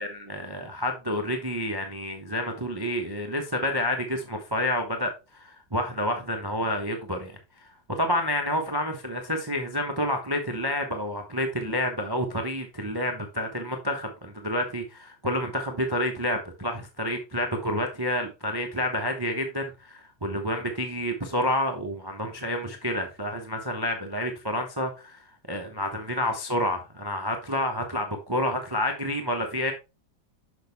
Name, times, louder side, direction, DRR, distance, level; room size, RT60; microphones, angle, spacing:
voice 1, 0.0-29.7, left 1 dB, 25° right, 0.5 m, -29 dB
6.4 x 6.2 x 3.4 m
omnidirectional pair, 2.1 m